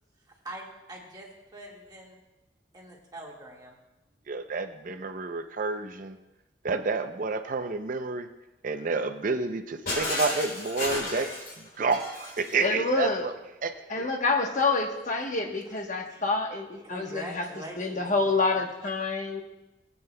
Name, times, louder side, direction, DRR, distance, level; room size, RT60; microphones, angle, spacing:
voice 1, 0.4-2.2 2.7-3.7 16.0-16.2 16.7-18.6, right 1 dB, 25° right, -2 dB, 1.7 m, -43 dB
voice 2, 4.3-6.2 6.6-8.3 8.6-11.3 11.8-13.3 13.6-14.1, right 4 dB, 50° right, 8 dB, 0.6 m, -30 dB
Shatter, 9.9-12.6, left 2 dB, 60° left, 3.4 m, -33 dB
voice 3, 12.6-13.3 13.9-17.5 17.8-19.4, left 3 dB, 45° left, 3 dB, 1.1 m, -27 dB
18.5 x 8.6 x 2.2 m, 0.99 s
head